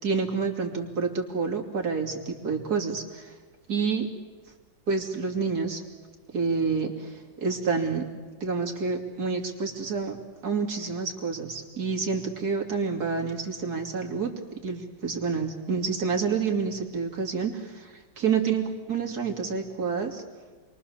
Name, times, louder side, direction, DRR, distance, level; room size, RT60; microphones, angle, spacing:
voice 1, 0.0-3.3 3.7-4.1 4.9-5.8 6.3-8.0 8.4-10.2 10.4-20.2, right 5 dB, 50° right, 2 dB, 3.2 m, -28 dB
29.0 x 22.5 x 7.1 m, 1.4 s
omnidirectional pair, 2.1 m